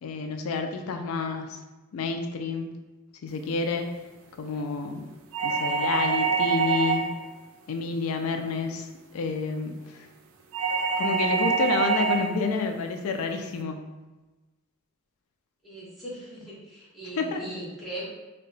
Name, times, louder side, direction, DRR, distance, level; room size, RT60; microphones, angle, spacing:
voice 1, 0.0-1.6 1.9-2.7 3.2-3.9 4.4-5.1 5.4-7.1 7.7-8.9 9.1-10.1 11.0-13.9 17.2-17.4, left 4 dB, 90° left, 5 dB, 0.4 m, -29 dB
sound 1, 5.3-7.3 10.5-12.3, right 5 dB, 85° right, 0.4 m, -25 dB
voice 2, 15.6-18.0, right 1 dB, ahead, -9 dB, 1.0 m, -39 dB
2.7 x 2.2 x 3.9 m, 1.2 s
head